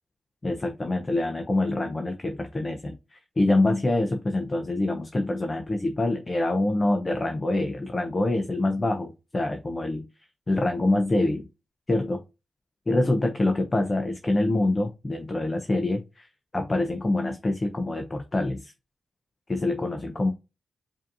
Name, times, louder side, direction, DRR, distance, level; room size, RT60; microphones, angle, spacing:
voice 1, 0.4-10.1 10.5-11.5 11.9-12.2 12.9-16.3 16.5-18.7 19.5-20.3, left 2 dB, 25° left, 4 dB, 0.6 m, -25 dB
4.9 x 2.7 x 2.5 m, 0.26 s
cardioid pair, 100°, 0 cm